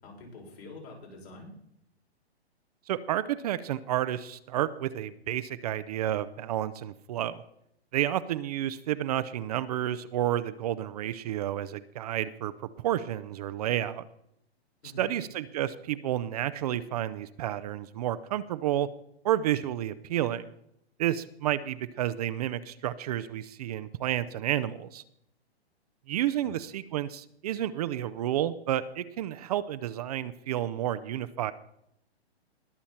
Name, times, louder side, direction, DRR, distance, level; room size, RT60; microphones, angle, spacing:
voice 1, 0.0-1.5 14.8-15.2 26.4-26.6, left 2 dB, 70° left, -1 dB, 6.2 m, -46 dB
voice 2, 2.9-7.4 7.9-12.5 12.8-14.0 15.0-18.9 19.2-20.5 21.0-25.0 26.1-31.5, right 12 dB, 35° right, 14 dB, 0.6 m, -30 dB
21.0 x 7.1 x 4.3 m, 0.75 s
hypercardioid pair, 140°, 32 cm